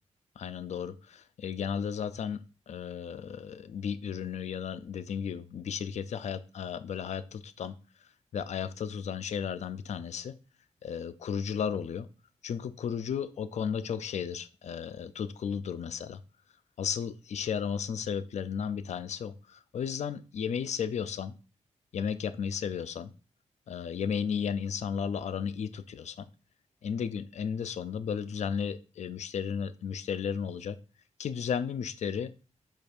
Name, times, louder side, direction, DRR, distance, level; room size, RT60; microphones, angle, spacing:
voice 1, 0.4-7.8 8.3-10.3 10.8-12.1 12.4-16.2 16.8-21.3 21.9-23.1 23.7-26.3 26.8-30.8 31.2-32.3, left 7 dB, 65° left, 13 dB, 0.4 m, -34 dB
5.0 x 2.4 x 4.3 m, 0.34 s
wide cardioid pair, 100°, 13 cm